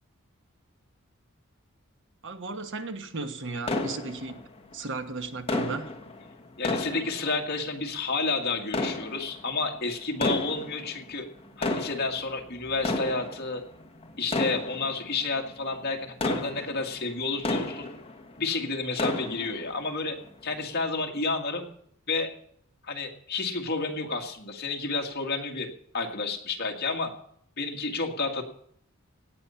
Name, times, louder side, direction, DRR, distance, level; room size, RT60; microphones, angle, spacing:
voice 1, 2.2-4.5 4.7-5.9, right 3 dB, 60° right, 8 dB, 1.3 m, -35 dB
sound 1, 3.6-4.7 5.5-7.8 8.6-9.6 10.1-11.0 11.4-18.4 18.7-19.8 20.3-20.4 21.0-21.1, left 2 dB, 25° left, 1.3 m, -32 dB
voice 2, 6.6-11.3 11.6-13.6 14.2-17.9 18.4-20.2 20.4-21.7 22.1-22.3 22.8-25.7 25.9-27.1 27.6-28.4, left 3 dB, 50° left, 2 dB, 2.0 m, -30 dB
17.5 x 9.8 x 5.7 m, 0.65 s
head